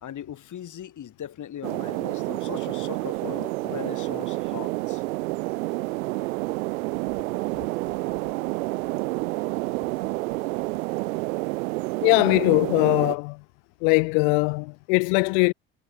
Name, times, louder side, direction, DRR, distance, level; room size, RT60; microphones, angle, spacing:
voice 1, 0.0-5.0, left 10 dB, 45° left, 3.0 m, -39 dB
sound 1, 1.6-13.2, right 23 dB, 80° right, 1.8 m, -29 dB
voice 2, 12.0-13.4 13.8-15.5, left 40 dB or more, 75° left, 1.4 m, -21 dB
hypercardioid pair, 75°, 41 cm